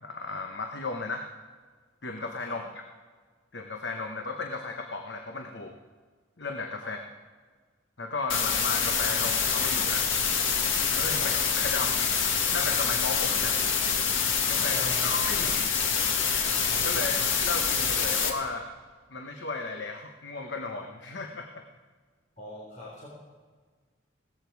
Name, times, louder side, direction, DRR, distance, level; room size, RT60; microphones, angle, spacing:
voice 1, 0.0-1.3 2.0-2.6 3.5-5.7 6.4-7.0 8.0-10.1 10.9-12.1 12.5-13.6 14.5-15.7 16.7-18.7 19.1-21.6, left 3 dB, 65° left, 4 dB, 1.0 m, -35 dB
sound 1, 8.3-18.3, left 6 dB, 90° left, 1.6 m, -26 dB
voice 2, 14.7-15.4 16.9-17.1 22.4-23.1, left 1 dB, 40° left, -5 dB, 3.5 m, -43 dB
17.0 x 14.0 x 4.7 m, 1.5 s
head